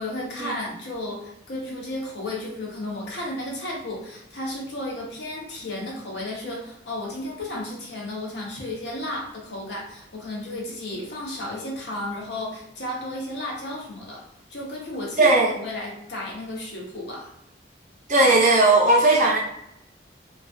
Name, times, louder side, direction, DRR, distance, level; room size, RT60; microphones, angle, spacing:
voice 1, 0.0-14.2 14.5-17.3, left 1 dB, 65° left, -2 dB, 0.7 m, -33 dB
voice 2, 15.2-15.5 18.1-19.4, right 2 dB, 40° right, -2 dB, 0.6 m, -17 dB
2.3 x 2.3 x 2.3 m, 0.79 s
head